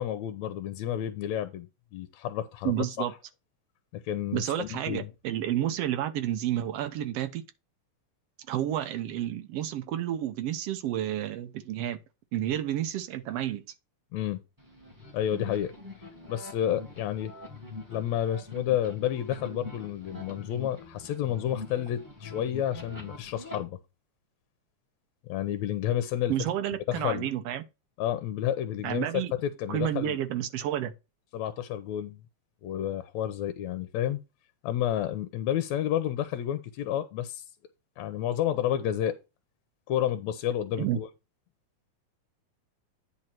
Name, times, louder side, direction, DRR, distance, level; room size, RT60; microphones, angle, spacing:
voice 1, 0.0-3.1 3.9-5.1 14.1-14.4 15.1-15.7 16.3-17.3 17.9-23.8 25.2-26.3 26.9-27.3 28.0-30.2 31.3-32.2 32.6-34.2 34.6-37.4 38.0-39.2 39.9-41.1, left 11 dB, 75° left, 1.8 m, -30 dB
voice 2, 2.6-3.1 4.3-7.4 8.5-12.0 12.3-13.6 26.3-27.6 28.8-29.3 29.7-30.9 40.8-41.0, right 11 dB, 75° right, 1.5 m, -30 dB
sound 1, 14.6-23.6, left 3 dB, 5° right, 2.1 m, -43 dB
9.8 x 4.6 x 4.4 m
omnidirectional pair, 3.8 m